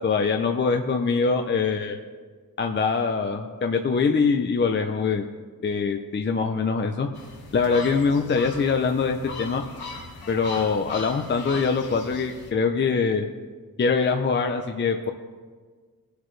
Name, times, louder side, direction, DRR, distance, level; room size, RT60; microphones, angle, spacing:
voice 1, 0.0-2.0 2.6-5.2 5.6-7.1 7.5-9.6 10.3-13.3 13.8-15.1, left 5 dB, 30° left, 4 dB, 0.6 m, -23 dB
sound 1, 7.1-12.5, left 4 dB, 85° left, 1.8 m, -39 dB
22.5 x 8.2 x 3.2 m, 1.5 s
wide cardioid pair, 165°, 36 cm